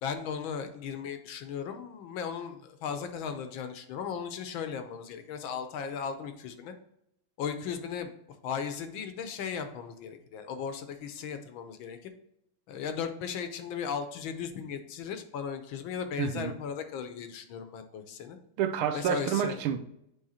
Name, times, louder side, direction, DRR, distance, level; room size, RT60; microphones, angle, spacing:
voice 1, 0.0-6.7 7.4-8.1 8.4-12.0 12.7-18.4 18.9-19.6, left 7 dB, 75° left, 8 dB, 1.4 m, -36 dB
voice 2, 16.2-16.5 18.6-19.8, right 9 dB, 85° right, 8 dB, 1.5 m, -29 dB
8.7 x 3.4 x 4.2 m, 0.79 s
omnidirectional pair, 2.3 m